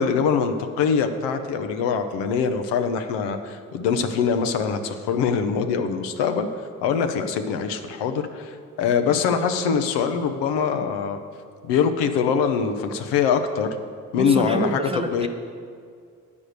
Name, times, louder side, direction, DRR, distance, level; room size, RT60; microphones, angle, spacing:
voice 1, 0.0-6.5 6.8-11.2 11.6-13.8 14.1-14.8 15.1-15.3, left 6 dB, 65° left, 8 dB, 0.8 m, -23 dB
voice 2, 14.2-15.3, right 2 dB, 15° right, 5 dB, 0.8 m, -27 dB
9.7 x 5.2 x 6.5 m, 2.1 s
hypercardioid pair, 50°, 45 cm